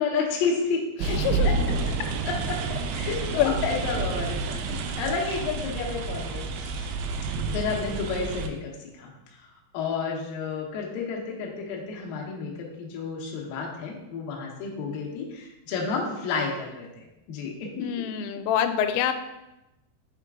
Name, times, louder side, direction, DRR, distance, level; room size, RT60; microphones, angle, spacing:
voice 1, 0.0-1.2 1.4-1.5 2.2-4.6 5.0-6.9 7.5-8.7 9.0-9.1 9.7-18.0, left 5 dB, 70° left, -2 dB, 2.2 m, -31 dB
voice 2, 1.0-1.5 3.4-3.6 17.8-19.1, left 10 dB, 90° left, 8 dB, 3.1 m, -25 dB
sound 1, 1.0-8.5, right 4 dB, 90° right, 3.1 m, -29 dB
7.1 x 4.5 x 3.7 m, 0.94 s
omnidirectional pair, 5.6 m